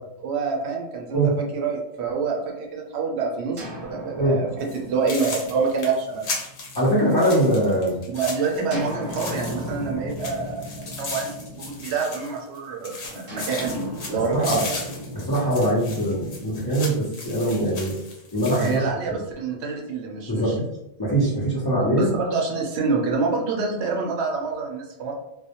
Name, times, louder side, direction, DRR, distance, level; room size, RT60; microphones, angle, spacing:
voice 1, 0.2-6.2 8.1-14.8 18.6-20.7 21.8-25.1, right 4 dB, 75° right, 1 dB, 0.8 m, -27 dB
sound 1, 3.6-7.4 8.7-12.3 13.3-17.4, equal, 45° right, 0.8 m, -37 dB
sound 2, 4.6-4.8 5.1-9.8 10.1-12.6 12.8-18.8, left 3 dB, 80° left, 1.0 m, -36 dB
voice 2, 6.7-8.0 14.1-14.6 15.1-18.0 18.3-19.2 20.3-20.5 21.0-22.1, right 1 dB, 25° left, -8 dB, 0.6 m, -22 dB
2.1 x 2.1 x 2.8 m, 0.84 s
omnidirectional pair, 1.1 m